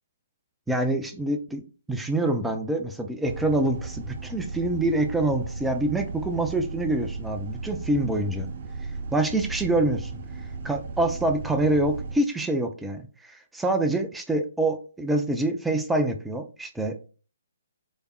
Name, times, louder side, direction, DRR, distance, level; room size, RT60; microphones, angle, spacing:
voice 1, 0.7-1.6 1.9-8.5 9.1-10.1 10.6-17.1, right 1 dB, 5° right, 5 dB, 0.5 m, -26 dB
sound 1, 3.3-12.2, right 4 dB, 45° right, 0.7 m, -35 dB
4.2 x 3.4 x 2.3 m, 0.37 s
figure-of-eight pair, 130°, 0 cm